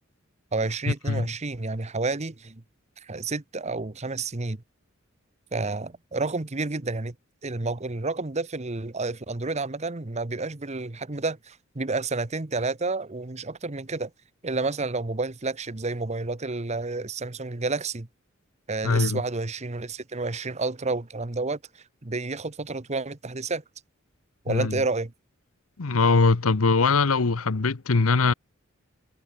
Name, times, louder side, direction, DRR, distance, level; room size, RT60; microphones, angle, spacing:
voice 1, 0.5-2.6 3.0-4.6 5.5-7.1 7.4-14.1 14.4-18.1 18.7-23.6 24.4-25.1, right 3 dB, 30° right, 1.1 m, -30 dB
voice 2, 18.8-19.2 24.5-24.8 25.8-28.3, left 4 dB, 90° left, 0.9 m, -21 dB
head